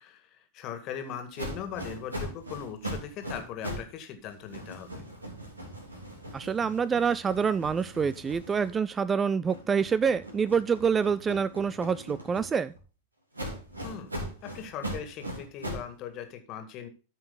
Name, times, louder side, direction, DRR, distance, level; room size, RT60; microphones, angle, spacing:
voice 1, 0.1-5.0 13.8-14.1 14.4-16.9, left 8 dB, 40° left, 7 dB, 2.0 m, -39 dB
sound 1, 1.4-4.0 4.3-9.0 9.5-12.8 13.3-15.9, equal, 80° right, 3.1 m, -40 dB
voice 2, 6.3-12.7, right 6 dB, 20° right, 17 dB, 0.4 m, -26 dB
13.5 x 5.8 x 3.8 m, 0.33 s
figure-of-eight pair, 90°, 0 cm